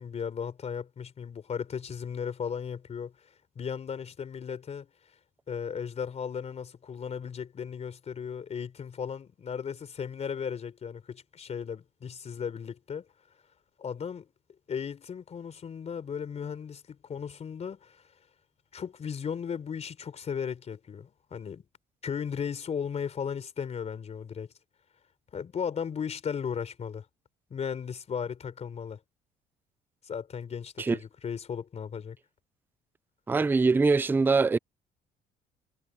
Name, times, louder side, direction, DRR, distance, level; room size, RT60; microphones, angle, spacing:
voice 1, 0.0-3.3 3.6-4.9 5.5-13.0 13.8-14.3 14.7-18.0 18.7-21.6 22.0-24.5 25.3-27.0 27.5-29.0 30.0-32.2, left 7 dB, 40° left, 3.7 m, -36 dB
voice 2, 33.3-34.6, right 4 dB, 10° right, 0.4 m, -23 dB
cardioid pair, 110°, 17 cm